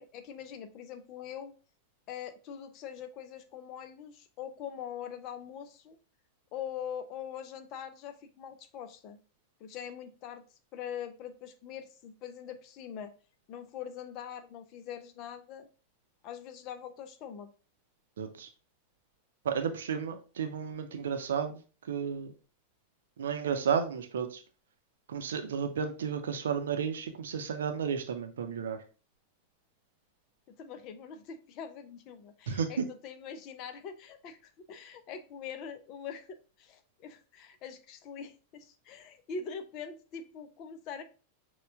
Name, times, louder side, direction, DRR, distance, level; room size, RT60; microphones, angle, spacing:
voice 1, 0.0-1.5 2.1-6.0 6.5-9.2 9.6-10.4 10.7-13.1 13.5-15.7 16.2-17.5 30.5-41.0, left 7 dB, 40° left, 10 dB, 0.6 m, -43 dB
voice 2, 18.2-18.5 19.4-21.6 21.9-22.3 23.2-24.4 25.1-28.8 32.5-32.9, right 7 dB, 65° right, 7 dB, 0.6 m, -32 dB
6.6 x 2.3 x 3.4 m, 0.36 s
figure-of-eight pair, 90°, 0 cm